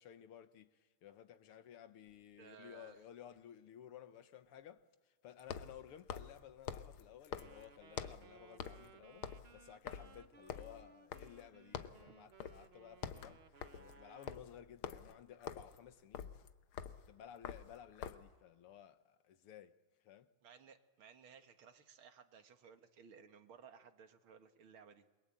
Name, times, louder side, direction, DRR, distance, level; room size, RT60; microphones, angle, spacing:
voice 1, 0.0-13.4 13.7-16.3 17.1-19.8 20.0-20.3, left 10 dB, 90° left, 2.1 m, -56 dB
sound 1, 2.1-2.2 5.4-8.3 8.6-8.9 9.2-11.5 11.7-12.1 12.4-12.7 12.9-18.3, left 8 dB, 75° left, 1.8 m, -47 dB
voice 2, 2.4-3.0 20.4-25.0, right 7 dB, 70° right, 2.4 m, -59 dB
Wind instrument woodwind instrument, 7.3-14.5, right 5 dB, 45° right, 0.8 m, -62 dB
29.0 x 23.0 x 8.8 m
omnidirectional pair, 2.4 m